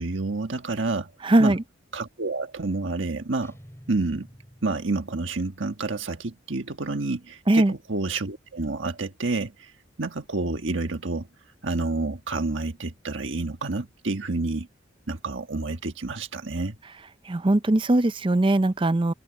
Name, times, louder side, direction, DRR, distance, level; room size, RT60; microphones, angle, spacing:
voice 1, 0.0-1.1 1.4-1.6 1.9-3.5 3.9-4.3 4.6-9.7 10.0-11.3 11.6-14.7 15.1-16.8, right 3 dB, 70° right, 1.4 m, -29 dB
voice 2, 1.2-1.6 7.5-7.7 17.3-19.1, right 1 dB, 25° right, 0.5 m, -20 dB
sound 1, 3.4-5.5, equal, 15° left, 7.8 m, -50 dB
head